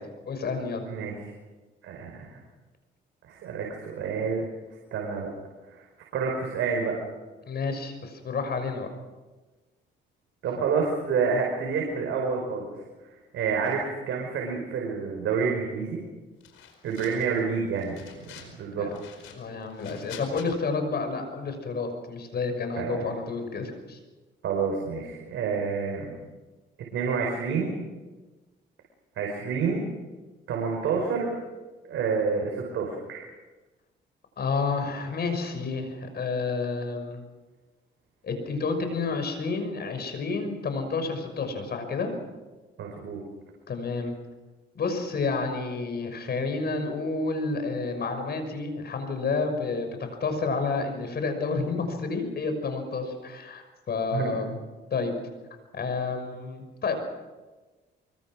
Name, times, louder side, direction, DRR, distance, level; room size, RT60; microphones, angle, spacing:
voice 1, 0.3-0.8 7.5-8.9 18.8-18.9 19.3-24.0 34.4-37.2 38.2-42.1 43.7-44.1 44.7-54.6 54.9-55.1 55.7-57.0, left 4 dB, 55° left, 7 dB, 6.0 m, -30 dB
voice 2, 0.9-1.3 1.8-2.2 3.2-4.5 4.9-5.3 5.7-5.8 6.1-7.0 10.4-12.7 13.3-16.0 16.8-18.9 22.8-23.1 24.4-26.1 26.9-27.7 29.2-29.8 30.5-31.3 31.9-33.2 42.8-43.2 54.1-54.4, right 5 dB, 80° right, 0 dB, 5.1 m, -28 dB
sound 1, 16.4-17.4 17.8-18.6 18.9-20.5, left 9 dB, 90° left, 4.8 m, -47 dB
24.5 x 23.5 x 6.3 m, 1.2 s
cardioid pair, 90°, 20 cm